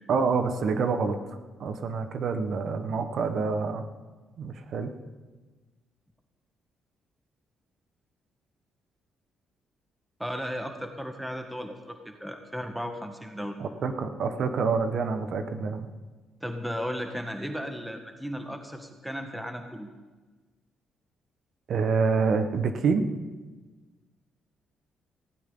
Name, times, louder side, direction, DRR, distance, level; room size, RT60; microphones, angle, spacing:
voice 1, 0.1-1.2 1.6-3.8 4.4-4.9 13.6-15.9 21.7-23.0, right 5 dB, 65° right, 8 dB, 1.3 m, -27 dB
voice 2, 10.2-13.6 16.4-19.9, equal, 5° right, 5 dB, 1.5 m, -35 dB
18.5 x 16.5 x 3.9 m, 1.3 s
cardioid pair, 90°, 0 cm